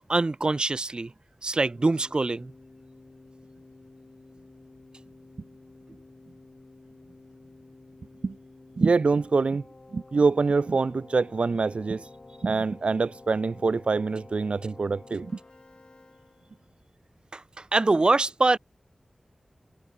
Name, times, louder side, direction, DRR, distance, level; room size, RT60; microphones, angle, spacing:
voice 1, 0.1-1.1 1.4-2.5 17.3-17.4 17.7-18.6, right 2 dB, 50° right, 1.4 m, -23 dB
Keyboard (musical), 1.7-16.8, left 2 dB, 50° left, 4.9 m, -51 dB
voice 2, 8.8-9.6 9.9-12.1 12.4-15.3, right 4 dB, 75° right, 0.6 m, -25 dB
wide cardioid pair, 65°, 2 cm